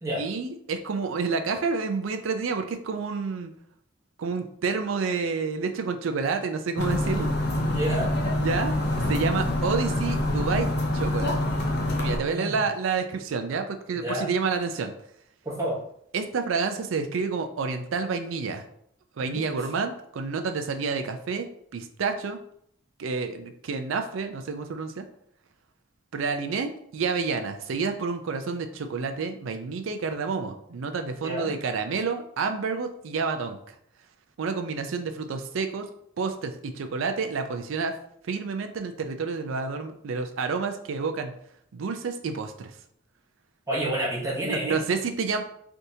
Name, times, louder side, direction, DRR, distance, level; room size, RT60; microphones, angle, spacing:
voice 1, 0.2-3.5 4.2-7.5 8.4-8.7 9.1-11.4 12.0-14.9 16.1-18.6 19.2-21.5 21.7-22.4 23.0-25.0 26.1-33.6 34.4-35.9 36.2-37.9 38.2-41.3 41.7-42.7 44.4-45.4, right 4 dB, 85° right, 7 dB, 0.4 m, -29 dB
sound 1, 6.8-12.2, left 1 dB, 55° left, 0.5 m, -26 dB
voice 2, 7.1-8.1 12.3-12.6 14.0-14.3 15.4-15.8 19.2-19.4 31.2-31.5 43.7-44.8, right 1 dB, 15° right, -6 dB, 0.9 m, -30 dB
3.4 x 2.7 x 2.7 m, 0.69 s
head